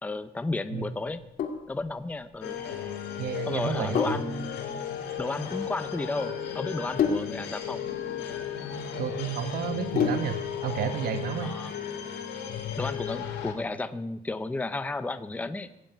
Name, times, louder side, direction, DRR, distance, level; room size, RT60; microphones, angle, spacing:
voice 1, 0.0-1.2 1.7-2.6 3.4-4.5 5.2-7.8 11.4-11.7 12.8-15.7, left 3 dB, 10° left, 11 dB, 0.8 m, -33 dB
Sink (filling or washing), 1.1-10.5, left 6 dB, 55° left, 2.6 m, -33 dB
sound 1, 2.4-13.5, left 8 dB, 90° left, 4.7 m, -35 dB
voice 2, 3.2-4.2 9.0-11.5, right 7 dB, 60° right, 7 dB, 1.6 m, -31 dB
21.0 x 16.5 x 9.1 m, 0.87 s
cardioid pair, 175°, 18 cm